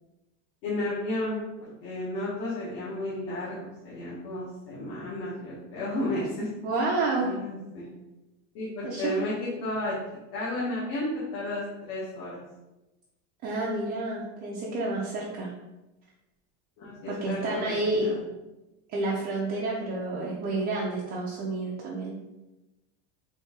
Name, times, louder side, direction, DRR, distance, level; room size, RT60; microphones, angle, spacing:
voice 1, 0.6-6.5 7.2-7.9 8.5-9.9 10.3-12.4 16.8-18.2, left 1 dB, 65° left, -7 dB, 1.3 m, -33 dB
voice 2, 6.6-7.3 8.8-9.3 13.4-15.5 17.1-18.1 18.9-22.1, right 2 dB, 30° right, -4 dB, 0.5 m, -29 dB
4.2 x 2.7 x 3.6 m, 1.0 s
cardioid pair, 170°, 34 cm